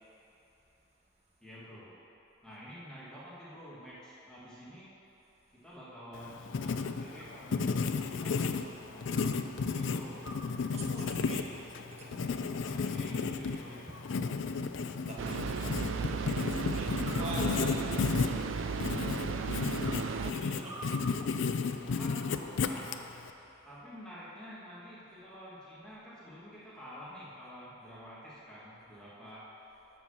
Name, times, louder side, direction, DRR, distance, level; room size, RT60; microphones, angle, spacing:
voice 1, 1.4-2.0 2.4-4.9 5.5-10.4 12.6-13.9 21.8-23.0 23.6-29.6, equal, 5° left, -9 dB, 1.6 m, -48 dB
Writing, 6.1-23.3, left 4 dB, 65° left, 0.4 m, -33 dB
sound 1, 6.3-8.1 9.2-9.5 10.2-10.6 11.4-11.9 12.5-13.2 13.9-14.6 15.8-16.1 16.8-18.9 19.4-21.3, right 1 dB, 15° right, 0.6 m, -50 dB
voice 2, 10.7-11.5 11.8-12.5 15.0-15.2 16.3-18.1 18.4-18.6 18.9-19.5 20.0-20.8, right 1 dB, 35° right, -3 dB, 1.4 m, -44 dB
sound 2, 15.2-20.3, right 5 dB, 75° right, 0.4 m, -35 dB
12.5 x 4.6 x 6.1 m, 2.9 s
head